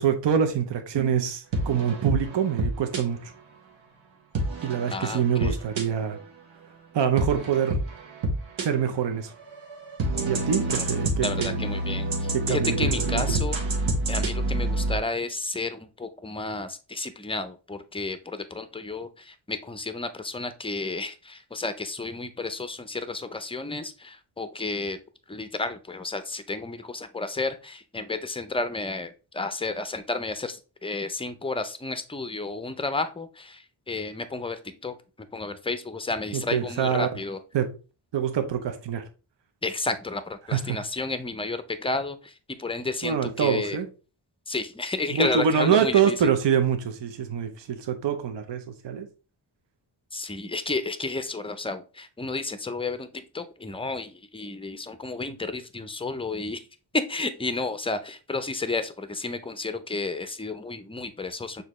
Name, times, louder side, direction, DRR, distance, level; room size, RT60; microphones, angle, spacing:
voice 1, 0.0-3.3 4.6-6.2 6.9-7.8 8.6-9.3 10.3-11.6 12.3-13.4 36.3-37.1 37.5-37.7 38.1-39.0 40.5-40.8 43.0-43.9 45.1-49.1, right 7 dB, 65° right, 0.7 m, -25 dB
sound 1, 1.5-3.0 4.3-6.2 7.2-8.6 9.3-15.0, right 2 dB, 80° right, 1.2 m, -28 dB
voice 2, 4.9-5.6 11.2-13.6 14.1-25.0 25.3-35.0 35.3-37.4 39.6-42.3 42.6-43.8 44.5-46.2 50.1-56.7 56.9-61.6, left 3 dB, 10° left, 0.4 m, -32 dB
6.4 x 2.7 x 3.0 m
wide cardioid pair, 105°, 46 cm